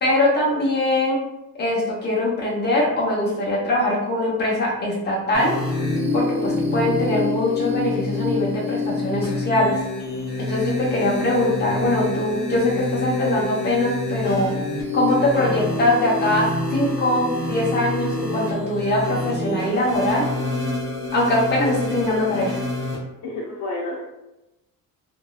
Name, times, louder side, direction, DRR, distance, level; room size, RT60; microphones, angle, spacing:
voice 1, 0.0-1.2 1.6-5.6 6.1-9.8 10.4-14.5 14.9-20.2 21.1-22.6, left 1 dB, 25° left, -5 dB, 0.8 m, -22 dB
sound 1, 5.3-23.0, left 2 dB, 40° right, 1.1 m, -26 dB
voice 2, 23.2-24.1, left 2 dB, 85° left, -5 dB, 0.6 m, -30 dB
3.1 x 2.6 x 2.3 m, 0.96 s
cardioid pair, 160°, 37 cm